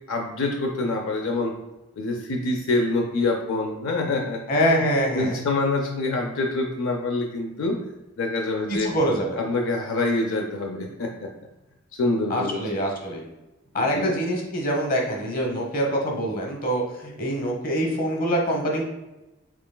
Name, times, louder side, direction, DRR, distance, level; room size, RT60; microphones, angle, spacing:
voice 1, 0.1-1.5 2.0-4.8 5.1-7.8 8.2-8.9 9.4-11.3 11.9-12.6 13.7-14.2, left 2 dB, 75° left, 2 dB, 0.5 m, -26 dB
voice 2, 4.5-5.4 8.7-9.4 12.3-13.2 13.7-18.8, equal, 45° left, 1 dB, 1.0 m, -25 dB
6.1 x 3.8 x 2.2 m, 1.0 s
head